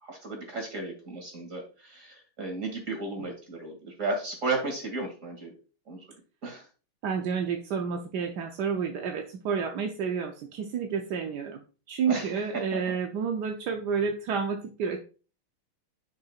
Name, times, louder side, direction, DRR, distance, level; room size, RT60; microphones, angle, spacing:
voice 1, 0.0-5.5 5.9-6.0 6.4-6.6 12.1-12.9, right 3 dB, 35° right, 1 dB, 2.8 m, -34 dB
voice 2, 7.0-11.6 11.9-15.0, right 6 dB, 65° right, 3 dB, 1.1 m, -30 dB
9.5 x 6.6 x 2.4 m, 0.36 s
omnidirectional pair, 2.4 m